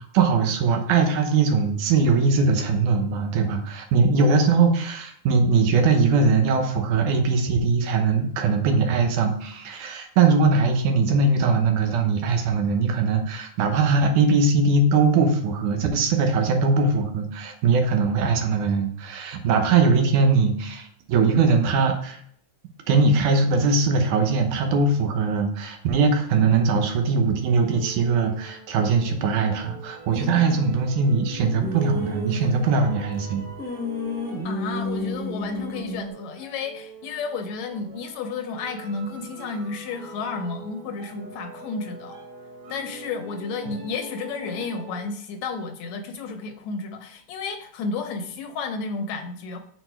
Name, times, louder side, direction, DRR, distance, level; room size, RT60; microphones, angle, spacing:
voice 1, 0.0-22.2 22.9-33.4, right 4 dB, 80° right, 5 dB, 2.4 m, -21 dB
sound 1, 27.4-45.1, right 2 dB, 65° right, 3.1 m, -43 dB
sound 2, 30.1-30.7 31.4-33.2 33.6-36.1, left 1 dB, 5° left, 1.2 m, -32 dB
voice 2, 34.4-42.2 42.7-49.6, left 4 dB, 75° left, 6 dB, 1.8 m, -32 dB
6.3 x 4.5 x 4.5 m, 0.63 s
omnidirectional pair, 3.5 m